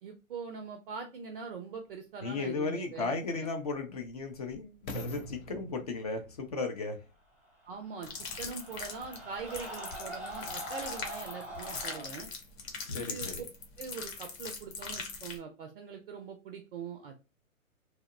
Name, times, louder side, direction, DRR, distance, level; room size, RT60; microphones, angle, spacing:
voice 1, 0.0-3.5 7.7-8.1 8.4-12.3 12.9-13.3 13.8-17.2, right 5 dB, 45° right, 0.4 m, -42 dB
sound 1, 1.9-2.0 2.7-8.0 8.6-8.7, right 1 dB, 75° left, 0.7 m, -47 dB
voice 2, 2.2-7.0 12.8-13.4, left 4 dB, 30° left, 0.4 m, -35 dB
sound 2, 7.6-12.1, equal, 5° right, 0.8 m, -43 dB
sound 3, 8.0-15.4, left 4 dB, 45° left, 0.9 m, -41 dB
2.8 x 2.0 x 2.4 m
hypercardioid pair, 125°, 42 cm